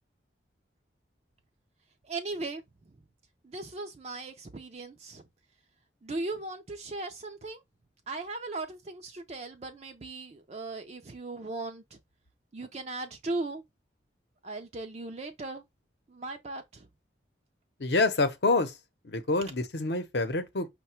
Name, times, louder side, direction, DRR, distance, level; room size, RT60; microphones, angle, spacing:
voice 1, 2.0-3.0 3.4-5.3 6.0-7.6 8.1-12.0 12.5-13.6 14.4-15.6 16.1-16.9, right 2 dB, 35° right, 0.4 m, -38 dB
voice 2, 17.8-18.8 19.0-20.7, left 3 dB, 60° left, 0.8 m, -27 dB
5.6 x 2.2 x 4.2 m
head